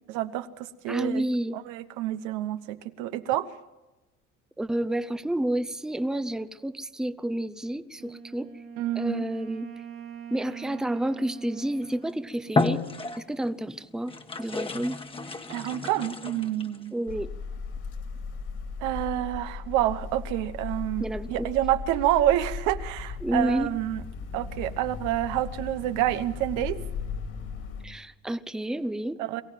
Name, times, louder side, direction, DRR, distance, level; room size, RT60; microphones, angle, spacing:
voice 1, 0.1-1.3 1.5-3.5 8.8-9.3 15.5-16.9 18.8-24.0 24.3-26.8 29.2-29.4, right 13 dB, 85° right, 1.1 m, -28 dB
voice 2, 0.9-1.6 4.6-8.5 9.0-9.7 10.3-12.8 13.2-14.1 14.4-15.0 16.9-17.3 21.0-21.5 23.2-23.7 27.8-29.2, right 1 dB, ahead, 0.7 m, -30 dB
Wind instrument woodwind instrument, 8.0-13.4, right 7 dB, 45° right, 1.8 m, -43 dB
sound 1, 11.8-12.0 12.5-13.5 14.1-16.8, left 3 dB, 20° left, 1.3 m, -31 dB
sound 2, 17.1-27.8, left 5 dB, 50° left, 2.6 m, -37 dB
23.0 x 15.5 x 7.6 m
cardioid pair, 115°, 30 cm